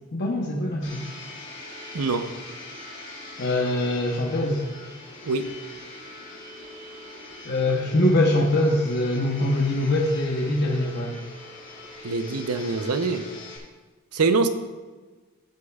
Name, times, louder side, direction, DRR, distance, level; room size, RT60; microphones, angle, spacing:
voice 1, 0.1-1.1 3.4-4.6 7.4-11.3, left 1 dB, 50° left, -2 dB, 0.9 m, -23 dB
Domestic sounds home sounds, 0.8-13.6, left 2 dB, 35° left, 2.4 m, -42 dB
voice 2, 1.9-2.3 5.2-5.5 12.0-13.3 14.1-14.5, right 4 dB, 85° right, 9 dB, 0.7 m, -24 dB
14.5 x 8.3 x 2.4 m, 1.3 s
head